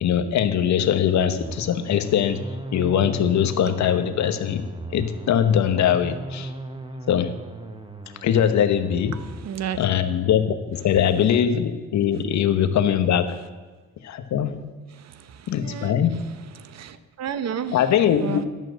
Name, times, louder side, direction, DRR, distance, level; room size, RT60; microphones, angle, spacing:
voice 1, 0.0-2.4 2.7-4.6 4.9-6.5 7.1-7.3 8.2-9.1 9.8-13.4 14.0-14.7 15.5-16.1 17.7-18.5, left 9 dB, 65° left, 9 dB, 1.0 m, -21 dB
sound 1, 1.4-9.9, right 2 dB, 15° right, 1.0 m, -38 dB
voice 2, 9.1-9.8 14.9-16.0 16.5-17.9 18.1-18.5, right 8 dB, 60° right, 13 dB, 0.8 m, -32 dB
11.0 x 6.3 x 7.9 m, 1.3 s
cardioid pair, 90°, 30 cm